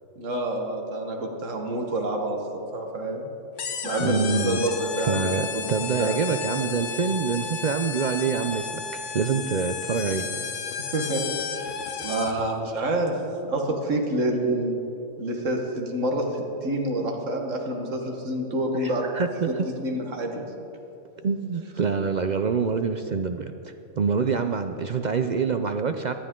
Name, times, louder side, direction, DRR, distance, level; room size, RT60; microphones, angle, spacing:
voice 1, 0.2-3.3 3.8-5.6 6.0-6.1 10.3-10.4 10.9-11.2 11.5-11.6 12.0-13.2 13.4-14.7 15.2-19.1 19.5-19.6 19.8-20.5, right 1 dB, 80° right, 2 dB, 1.8 m, -27 dB
sound 1, 3.6-12.5, left 6 dB, 75° left, 1.2 m, -33 dB
voice 2, 4.0-4.7 5.1-10.3 18.8-19.7 21.2-26.1, right 5 dB, 55° right, 7 dB, 0.5 m, -26 dB
18.5 x 11.5 x 3.7 m, 2.8 s
omnidirectional pair, 1.3 m